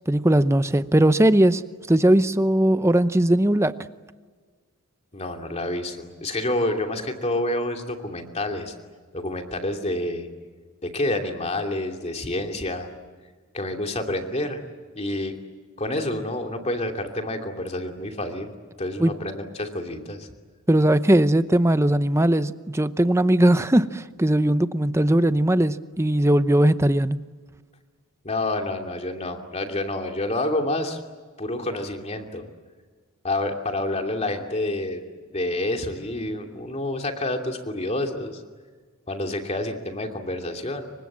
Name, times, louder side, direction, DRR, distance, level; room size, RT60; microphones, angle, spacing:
voice 1, 0.1-1.6 1.9-3.7 19.0-19.1 20.7-27.2, right 1 dB, 15° right, 12 dB, 0.7 m, -19 dB
voice 2, 5.1-8.7 9.1-10.3 10.8-12.9 13.5-14.6 14.9-15.4 15.8-18.5 18.8-20.3 28.2-31.0 31.4-32.5 33.2-38.4 39.1-40.9, left 1 dB, 30° left, 4 dB, 2.7 m, -28 dB
29.5 x 25.0 x 7.5 m, 1.5 s
head